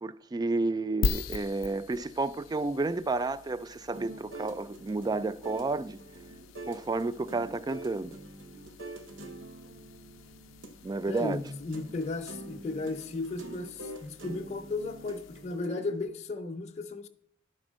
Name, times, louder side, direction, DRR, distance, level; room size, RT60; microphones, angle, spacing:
voice 1, 0.0-6.0 6.7-8.1 10.8-11.4, right 3 dB, 20° right, 0.3 m, -31 dB
sound 1, 1.0-15.8, left 4 dB, 85° left, 0.4 m, -41 dB
sound 2, 3.9-16.0, right 2 dB, 75° right, 1.0 m, -46 dB
voice 2, 11.1-17.1, left 3 dB, 35° left, 0.5 m, -35 dB
11.5 x 4.3 x 6.2 m
head